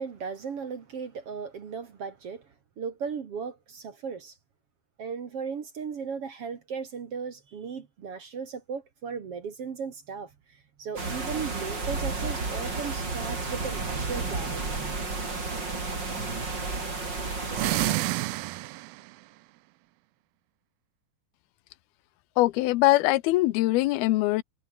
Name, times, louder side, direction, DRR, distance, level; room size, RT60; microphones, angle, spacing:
voice 1, 0.0-2.4 2.8-4.4 5.0-10.3 10.8-15.2, right 6 dB, 45° right, 2.2 m, -36 dB
sound 1, 11.0-17.9, right 3 dB, 30° right, 5.0 m, -32 dB
sound 2, 17.4-19.1, right 19 dB, 85° right, 2.6 m, -28 dB
voice 2, 22.4-24.4, left 18 dB, 85° left, 2.7 m, -22 dB
omnidirectional pair, 4.4 m